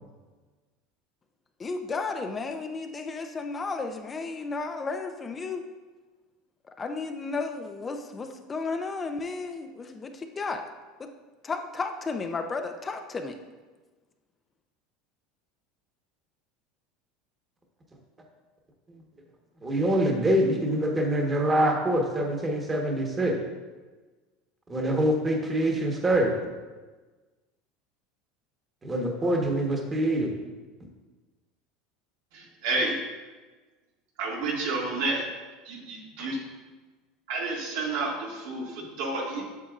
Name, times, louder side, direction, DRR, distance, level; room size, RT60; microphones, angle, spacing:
voice 1, 1.6-5.6 6.8-10.6 11.0-11.1 11.4-13.3, left 4 dB, 20° left, 5 dB, 0.5 m, -33 dB
voice 2, 19.6-23.4 24.7-26.3 28.8-30.3, right 1 dB, 20° right, 1 dB, 1.2 m, -25 dB
voice 3, 32.3-33.0 34.2-35.2 35.7-36.4 37.3-39.4, right 3 dB, 80° right, -3 dB, 2.1 m, -30 dB
8.3 x 6.8 x 2.4 m, 1.3 s
supercardioid pair, 125°, 0 cm